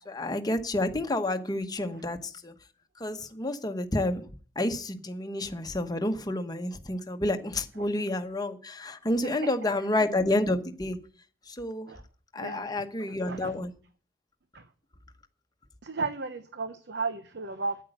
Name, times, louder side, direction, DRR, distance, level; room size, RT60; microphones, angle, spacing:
voice 1, 0.1-2.5 3.0-4.2 4.5-11.0 11.5-11.9 12.3-13.7, left 1 dB, 20° left, 1.1 m, -29 dB
voice 2, 9.2-9.5 11.9-12.0 12.4-13.6 14.5-14.7 15.8-17.8, right 4 dB, 65° right, 0.8 m, -35 dB
9.4 x 8.4 x 7.9 m
head